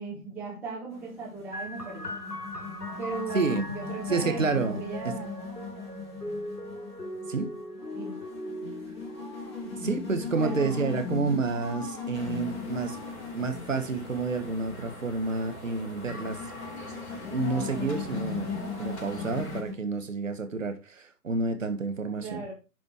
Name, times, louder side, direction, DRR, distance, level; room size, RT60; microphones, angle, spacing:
voice 1, 0.0-2.2 3.0-5.3 7.9-8.2 9.6-11.2 22.2-22.5, right 4 dB, 5° right, 1.7 m, -38 dB
sound 1, 0.9-19.7, left 4 dB, 15° left, 1.7 m, -39 dB
sound 2, 1.5-14.8 15.6-16.4, equal, 80° left, 3.8 m, -41 dB
voice 2, 4.1-5.2 7.3-7.5 9.8-13.0 13.3-16.4 17.3-18.5 18.8-22.4, right 3 dB, 55° right, 1.8 m, -29 dB
sound 3, 12.1-19.6, left 1 dB, 45° left, 4.0 m, -43 dB
11.0 x 5.3 x 4.7 m
figure-of-eight pair, 150°, 47 cm